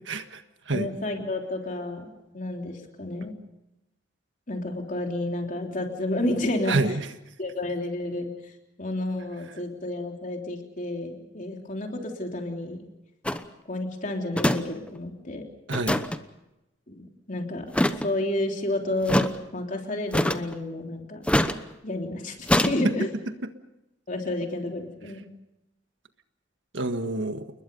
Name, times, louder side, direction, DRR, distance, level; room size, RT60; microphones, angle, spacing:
voice 1, 0.1-0.9 6.7-7.1 15.7-16.0 23.4-23.5 26.7-27.5, right 2 dB, 80° right, 8 dB, 1.6 m, -28 dB
voice 2, 0.7-3.4 4.5-6.8 7.4-8.5 8.8-12.8 13.7-15.4 16.9-17.7 18.0-21.2 21.8-23.1 24.1-25.2, left 1 dB, 45° left, 2 dB, 3.4 m, -31 dB
sound 1, 13.3-13.4 14.4-14.6 14.9-15.0 15.7-16.2 17.7-18.1 19.1-19.3 20.1-20.6 21.3-21.6 22.5-22.7, left 1 dB, 5° left, 0.9 m, -23 dB
29.5 x 21.0 x 5.4 m, 0.93 s
head